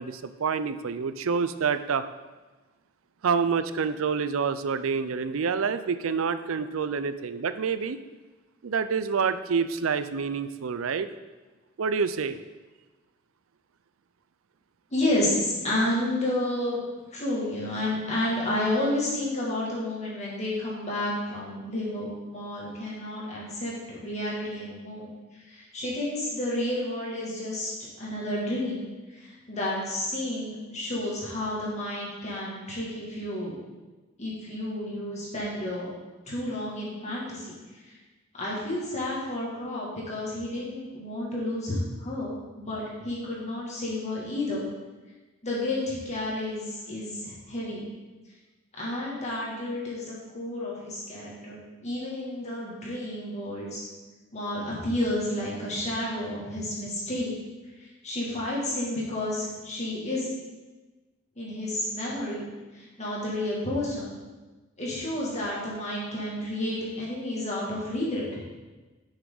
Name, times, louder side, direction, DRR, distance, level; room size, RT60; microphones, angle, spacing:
voice 1, 0.0-2.0 3.2-8.0 8.6-11.1 11.8-12.4, right 5 dB, 80° right, 12 dB, 0.5 m, -27 dB
voice 2, 14.9-16.8 17.1-28.8 29.1-33.6 34.2-35.9 36.3-37.6 37.9-38.0 38.3-44.6 45.4-47.9 48.8-53.8 54.3-57.3 57.8-60.3 61.4-62.5 62.7-64.2 64.8-68.4, left 1 dB, 35° left, -5 dB, 2.3 m, -31 dB
11.0 x 6.3 x 4.0 m, 1.2 s
head